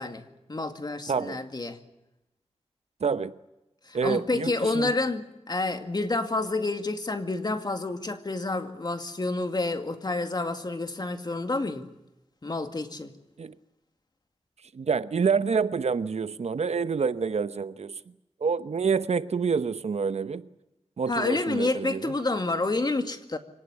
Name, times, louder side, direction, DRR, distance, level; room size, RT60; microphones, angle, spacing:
voice 1, 0.0-1.8 3.9-11.9 12.4-13.1 21.1-23.4, left 2 dB, 40° left, 2.2 m, -29 dB
voice 2, 1.1-1.4 3.0-3.3 3.9-4.9 13.4-13.6 14.7-18.0 18.4-20.5 21.0-22.1, right 5 dB, 70° right, 1.0 m, -27 dB
25.0 x 18.5 x 9.9 m
wide cardioid pair, 75°, 11 cm